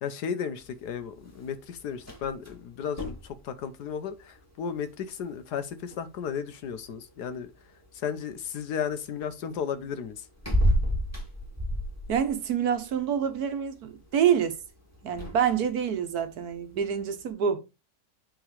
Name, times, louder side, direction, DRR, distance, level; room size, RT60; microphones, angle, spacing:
voice 1, 0.0-7.5 7.9-10.3, left 7 dB, 80° left, 1.5 m, -34 dB
sound 1, 0.6-17.3, equal, 10° left, 2.2 m, -35 dB
voice 2, 12.1-14.6 15.0-17.6, right 8 dB, 70° right, 1.5 m, -27 dB
8.2 x 3.9 x 4.8 m
omnidirectional pair, 1.7 m